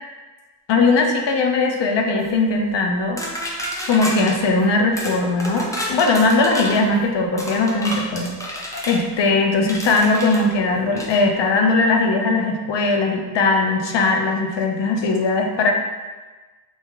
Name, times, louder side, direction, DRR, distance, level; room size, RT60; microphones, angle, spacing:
voice 1, 0.7-3.6 3.9-15.7, left 3 dB, 90° left, 2 dB, 0.5 m, -19 dB
sound 1, 3.2-4.3 5.0-5.1 5.4-6.8 7.4-9.0 9.7-10.4 11.0-11.2, equal, 10° left, 0.6 m, -29 dB
3.0 x 2.4 x 3.5 m, 1.3 s
cardioid pair, 50°, 42 cm